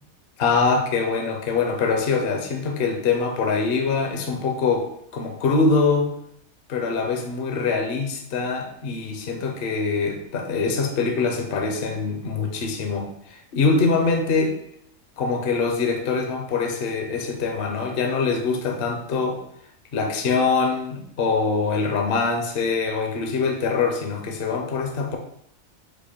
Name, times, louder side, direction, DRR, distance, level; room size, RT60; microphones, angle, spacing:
voice 1, 0.4-4.9 5.1-6.1 6.7-14.5 15.2-19.4 19.9-25.2, left 4 dB, 55° left, 3 dB, 0.7 m, -23 dB
4.4 x 2.5 x 4.3 m, 0.70 s
omnidirectional pair, 1.5 m